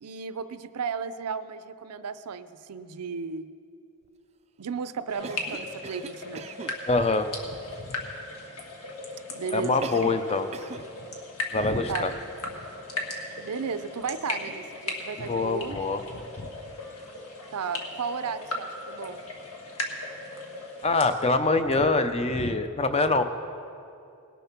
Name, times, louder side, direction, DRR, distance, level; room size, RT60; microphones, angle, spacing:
voice 1, 0.0-3.5 4.6-6.5 9.3-10.1 11.9-12.1 13.4-15.8 17.5-19.2, right 5 dB, 90° right, 13 dB, 0.5 m, -34 dB
sound 1, 5.1-21.1, left 2 dB, 70° left, 1.6 m, -37 dB
Cough, 5.2-6.8 9.8-10.3 10.5-10.9, right 4 dB, 30° right, 0.4 m, -39 dB
voice 2, 6.9-7.3 7.8-8.0 9.5-10.5 11.5-12.1 15.2-16.5 20.8-23.2, left 3 dB, 30° left, 9 dB, 0.6 m, -25 dB
18.5 x 7.0 x 5.9 m, 2.6 s
head